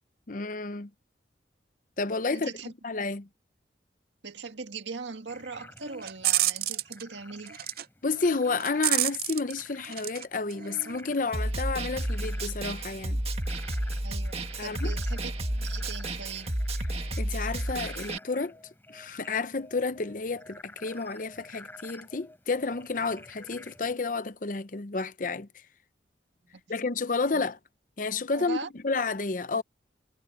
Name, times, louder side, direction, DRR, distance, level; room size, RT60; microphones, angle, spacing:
voice 1, 0.3-0.9 2.0-2.5 2.8-3.3 8.0-13.2 14.6-14.9 17.0-18.5 18.9-25.5 26.7-27.6 28.0-29.6, left 4 dB, 45° left, 0.7 m, -31 dB
voice 2, 2.3-2.7 4.2-7.5 14.0-16.5 26.5-26.6 27.3-27.4 28.3-28.7, right 4 dB, 80° right, 2.0 m, -40 dB
Frog, 5.3-24.0, left 2 dB, 10° left, 3.6 m, -51 dB
sound 1, 5.8-7.0 7.5-7.8 8.1-10.2 10.5-11.0, right 15 dB, 55° right, 0.5 m, -29 dB
Snare drum, 11.3-18.2, right 1 dB, 35° right, 2.0 m, -31 dB
head